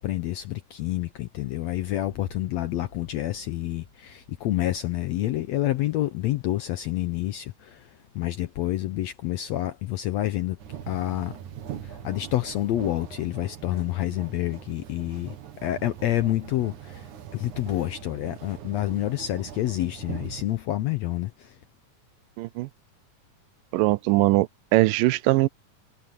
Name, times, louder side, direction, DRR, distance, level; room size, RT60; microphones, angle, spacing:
voice 1, 0.0-7.9 8.1-10.6 10.9-11.3 11.8-15.3 15.6-21.5, left 14 dB, 80° left, 1.6 m, -28 dB
Boom, 1.7-5.9, left 1 dB, 30° left, 6.0 m, -53 dB
sound 1, 10.6-20.4, right 9 dB, 65° right, 2.9 m, -41 dB
voice 2, 22.4-22.7 23.7-25.5, right 19 dB, 85° right, 2.3 m, -21 dB
omnidirectional pair, 3.8 m